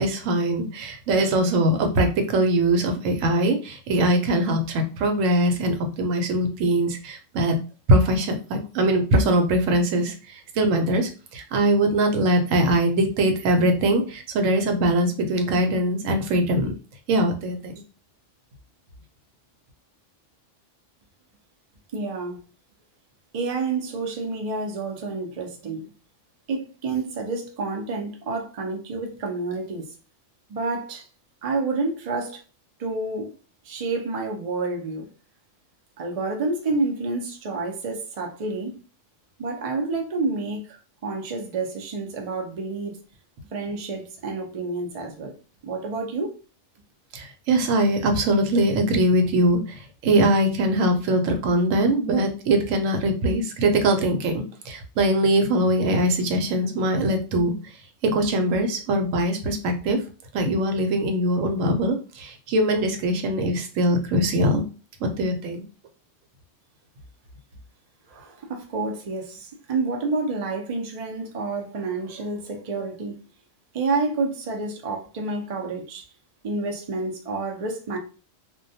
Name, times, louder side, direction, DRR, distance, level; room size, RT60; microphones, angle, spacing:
voice 1, 0.0-7.6 7.9-16.7 17.1-17.7 47.1-57.5 58.0-60.0 60.3-64.6 65.0-65.6, right 1 dB, 85° right, 1.0 m, -22 dB
voice 2, 21.9-22.4 23.3-25.9 26.5-29.9 30.5-31.1 31.4-32.4 32.8-33.4 33.6-35.1 36.0-38.8 39.4-40.8 41.0-43.0 43.5-45.3 45.6-46.3 68.1-73.2 73.7-76.0 76.4-78.0, right 3 dB, 55° right, 0.4 m, -29 dB
2.2 x 2.2 x 2.6 m
omnidirectional pair, 1.3 m